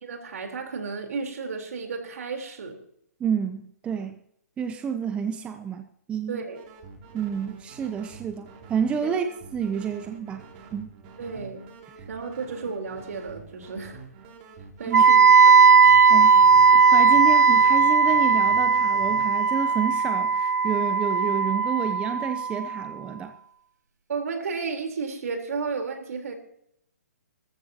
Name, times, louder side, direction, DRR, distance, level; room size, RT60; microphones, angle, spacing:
voice 1, 0.0-2.8 6.3-6.6 9.0-9.1 11.2-11.7 12.1-14.0 14.8-15.2 15.5-15.6 24.1-26.3, right 5 dB, 65° right, 4 dB, 3.8 m, -33 dB
voice 2, 3.2-4.2 4.6-6.4 7.1-9.3 9.5-10.5 10.7-10.9 14.9-15.0 16.1-23.3, right 7 dB, 10° right, 8 dB, 0.6 m, -29 dB
sound 1, 6.5-19.2, right 5 dB, 35° right, 3.1 m, -47 dB
Wind instrument woodwind instrument, 14.9-22.9, right 5 dB, 85° right, 0.5 m, -17 dB
20.0 x 14.0 x 2.9 m, 0.72 s
hypercardioid pair, 145°, 9 cm